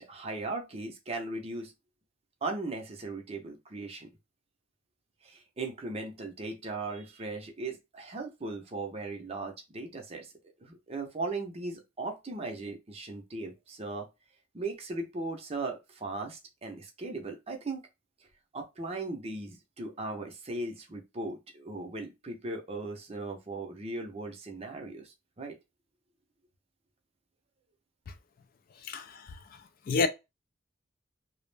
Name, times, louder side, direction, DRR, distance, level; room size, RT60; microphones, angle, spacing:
voice 1, 0.0-1.7 2.4-4.1 5.2-10.3 10.6-14.1 14.5-17.8 18.5-25.6, right 2 dB, 30° right, 0.6 m, -38 dB
voice 2, 28.8-29.3 29.9-30.1, left 4 dB, 50° left, 0.3 m, -28 dB
2.3 x 2.0 x 3.2 m
head